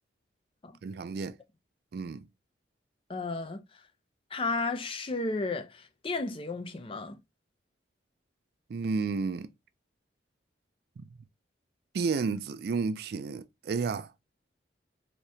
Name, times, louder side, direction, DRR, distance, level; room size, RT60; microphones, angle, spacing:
voice 1, 0.8-1.4 1.9-2.2 8.7-9.5 11.0-11.1 11.9-14.1, right 4 dB, 55° right, 0.3 m, -31 dB
voice 2, 3.1-3.6 4.3-7.2, left 3 dB, 30° left, 0.4 m, -33 dB
3.4 x 2.8 x 2.6 m
head